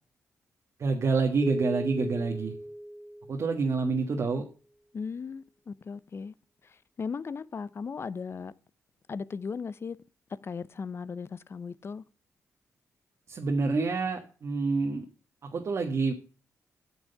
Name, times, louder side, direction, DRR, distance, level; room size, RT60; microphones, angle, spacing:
voice 1, 0.8-2.5 3.3-4.4 13.3-15.0 15.4-16.2, right 4 dB, 55° right, 1.5 m, -27 dB
sound 1, 1.4-4.0, equal, 5° left, 1.0 m, -37 dB
voice 2, 4.9-6.3 7.0-8.5 9.1-10.0 10.3-12.0, left 5 dB, 45° left, 0.7 m, -37 dB
9.5 x 6.2 x 6.8 m
cardioid pair, 85°, 6 cm